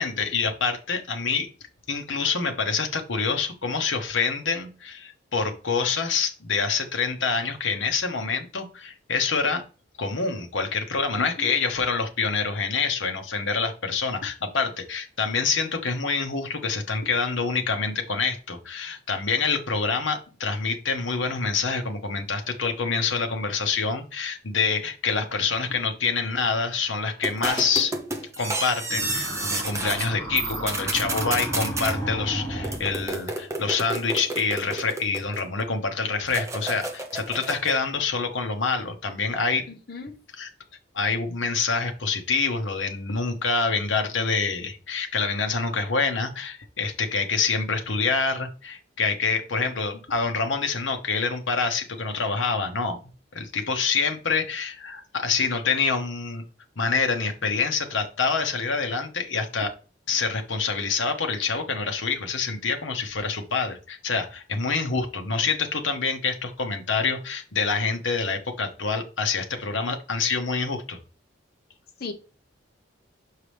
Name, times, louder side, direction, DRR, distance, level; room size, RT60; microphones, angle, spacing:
voice 1, 0.0-1.5 1.9-9.6 10.0-27.9 28.4-39.6 40.4-40.5 40.9-53.0 53.3-56.4 56.8-59.7 60.1-71.0, left 4 dB, 75° left, 1.1 m, -26 dB
voice 2, 11.2-11.5 39.7-40.1 72.0-72.1, left 3 dB, 50° left, 1.0 m, -36 dB
sound 1, 27.2-30.1 30.4-31.9 32.6-35.6 36.3-37.8, right 2 dB, 15° right, 0.8 m, -31 dB
sound 2, 28.9-33.2, right 1 dB, 20° left, 1.9 m, -33 dB
6.6 x 4.8 x 3.4 m
head